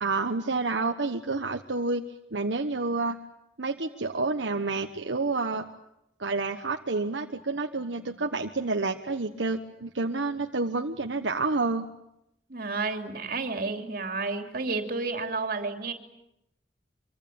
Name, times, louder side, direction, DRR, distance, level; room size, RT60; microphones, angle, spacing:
voice 1, 0.0-2.0 2.3-3.2 3.6-5.6 6.2-11.9, right 3 dB, 80° right, 4 dB, 1.3 m, -29 dB
voice 2, 12.5-15.9, right 3 dB, 55° right, 5 dB, 3.2 m, -31 dB
26.0 x 24.5 x 8.8 m, 0.84 s
head